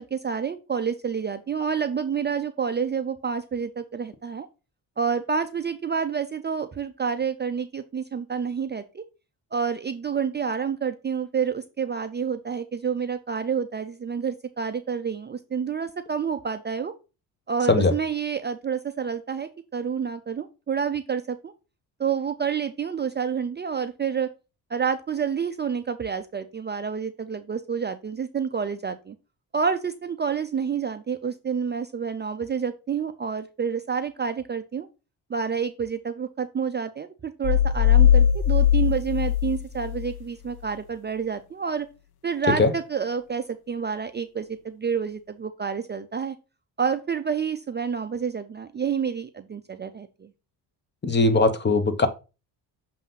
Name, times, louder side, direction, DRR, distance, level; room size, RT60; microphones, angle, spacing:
voice 1, 0.0-4.5 5.0-9.0 9.5-16.9 17.5-21.5 22.0-24.3 24.7-29.2 29.5-34.9 35.3-41.9 42.2-46.4 46.8-50.3, right 6 dB, 25° right, 0.5 m, -28 dB
sound 1, 37.4-40.2, left 9 dB, 60° left, 0.6 m, -20 dB
voice 2, 51.0-52.1, left 3 dB, 25° left, 0.9 m, -19 dB
7.2 x 2.8 x 5.4 m
cardioid pair, 80°, 43 cm